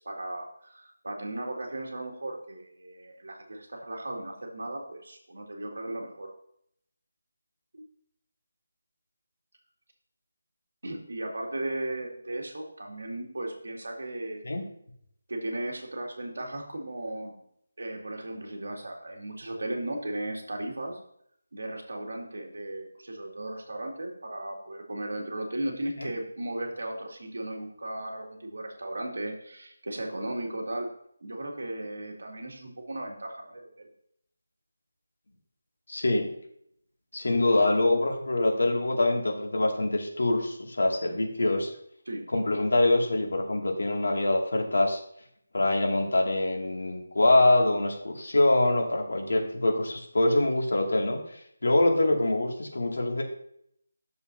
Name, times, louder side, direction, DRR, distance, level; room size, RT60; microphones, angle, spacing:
voice 1, 0.0-6.3 7.7-7.9 10.8-14.4 15.3-17.4 17.8-21.0 21.5-30.9 31.2-33.9 42.1-42.3, right 1 dB, 75° right, 1 dB, 2.2 m, -36 dB
voice 2, 35.9-36.3 37.1-41.7 42.3-45.0 45.5-53.2, left 2 dB, 70° left, 0 dB, 2.2 m, -24 dB
11.0 x 6.9 x 2.7 m, 0.70 s
figure-of-eight pair, 175°, 0 cm